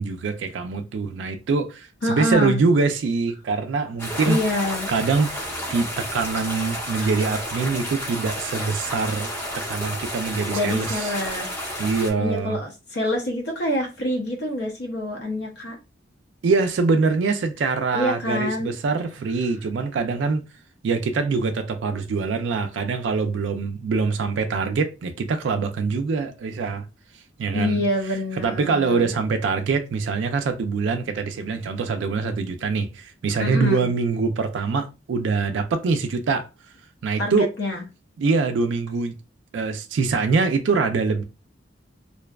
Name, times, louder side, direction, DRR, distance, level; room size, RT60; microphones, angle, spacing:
voice 1, 0.0-4.4 4.9-5.3 5.7-11.1 11.8-12.6 16.4-20.4 20.8-26.9 27.4-27.8 28.4-36.5 37.0-37.5 38.2-39.1 39.5-41.2, right 4 dB, 70° right, 0.3 m, -24 dB
voice 2, 2.0-2.6 4.2-4.9 7.0-7.1 10.5-11.5 12.2-15.8 17.9-18.7 27.5-29.1 33.4-33.9 37.2-37.8, left 1 dB, 60° left, 0.6 m, -26 dB
sound 1, 4.0-12.1, equal, 15° left, 0.6 m, -31 dB
2.6 x 2.2 x 2.2 m
head